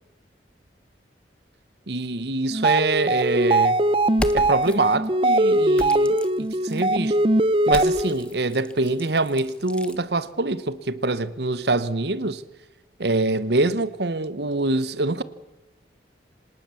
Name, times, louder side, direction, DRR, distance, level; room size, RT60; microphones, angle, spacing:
voice 1, 1.9-3.8 4.3-7.2 7.7-12.4 13.0-15.2, right 2 dB, 65° right, 1.1 m, -25 dB
sound 1, 2.5-8.3, right 1 dB, 30° right, 0.7 m, -21 dB
sound 2, 4.1-4.8 5.7-6.9 7.6-10.0, left 1 dB, 5° left, 1.0 m, -36 dB
26.5 x 19.0 x 7.1 m
head